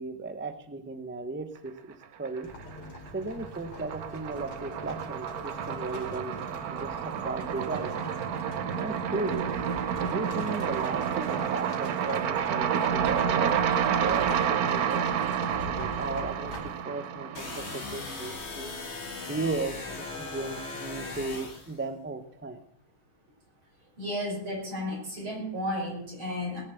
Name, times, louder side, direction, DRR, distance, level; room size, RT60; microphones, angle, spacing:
voice 1, 0.0-2.5 3.1-6.3 6.7-7.9 8.7-9.5 10.0-13.5 14.0-18.7 19.3-22.6, right 3 dB, 15° right, 9 dB, 0.4 m, -36 dB
sound 1, 2.0-2.8 3.1-18.2, right 8 dB, 60° right, 1.1 m, -30 dB
Livestock farm animals working animals, 2.4-16.8, left 1 dB, 85° left, 3.6 m, -43 dB
sound 2, 17.3-21.8, left 3 dB, 35° left, 2.0 m, -38 dB
voice 2, 24.0-26.6, left 1 dB, 80° right, -2 dB, 6.5 m, -33 dB
20.0 x 7.4 x 6.9 m, 0.66 s
omnidirectional pair, 2.2 m